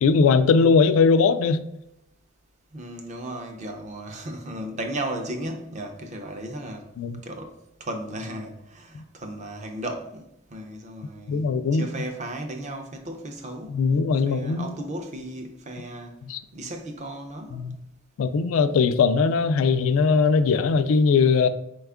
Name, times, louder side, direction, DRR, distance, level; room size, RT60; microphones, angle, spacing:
voice 1, 0.0-1.6 7.0-7.2 11.3-11.9 13.7-14.8 16.3-16.4 17.5-17.8 18.2-21.5, left 5 dB, 75° left, 0.3 m, -20 dB
voice 2, 2.7-6.9 7.2-7.5 7.8-13.8 14.3-16.2 16.5-17.6, right 1 dB, 35° right, 0.4 m, -35 dB
4.3 x 2.3 x 3.5 m
head